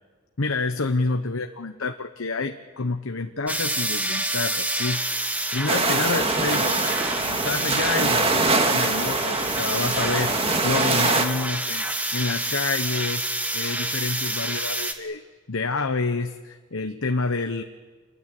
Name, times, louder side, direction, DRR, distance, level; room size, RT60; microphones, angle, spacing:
voice 1, 0.4-5.0 5.5-6.8 7.2-11.9 12.1-13.3 13.5-17.6, left 3 dB, 90° left, 6 dB, 1.0 m, -28 dB
sound 1, 3.5-14.9, right 1 dB, 10° right, 1.8 m, -28 dB
sound 2, 5.7-11.2, right 3 dB, 30° right, 1.9 m, -23 dB
28.0 x 21.5 x 8.5 m, 1.4 s
head